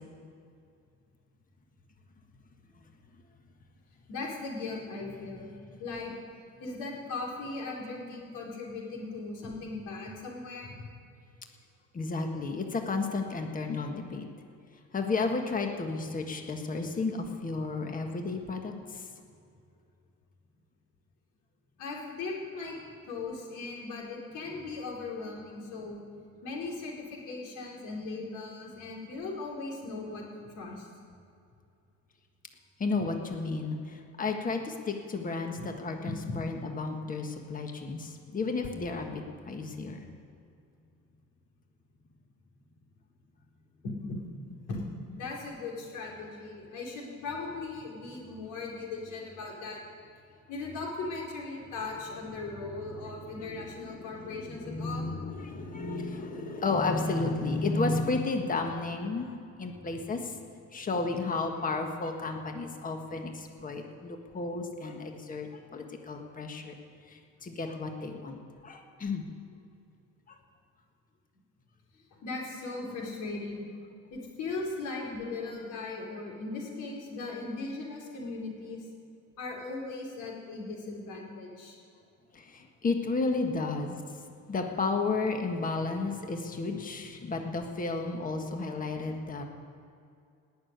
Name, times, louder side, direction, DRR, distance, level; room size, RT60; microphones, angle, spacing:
voice 1, 4.1-5.5 5.8-6.1 6.6-10.9 21.8-22.7 23.1-26.0 26.4-30.9 35.6-35.7 36.0-36.3 43.8-44.2 44.7-44.8 45.1-49.8 50.5-55.1 72.2-73.7 74.1-78.9 79.4-81.8 83.6-83.7, left 3 dB, 75° left, -2 dB, 4.4 m, -38 dB
voice 2, 11.9-14.3 14.9-19.1 32.8-35.6 35.8-40.0 53.3-60.4 60.7-66.7 67.1-69.2 70.3-70.4 82.3-89.4, left 3 dB, 25° left, 4 dB, 1.6 m, -33 dB
18.0 x 6.8 x 9.4 m, 2.5 s
cardioid pair, 130°, 30 cm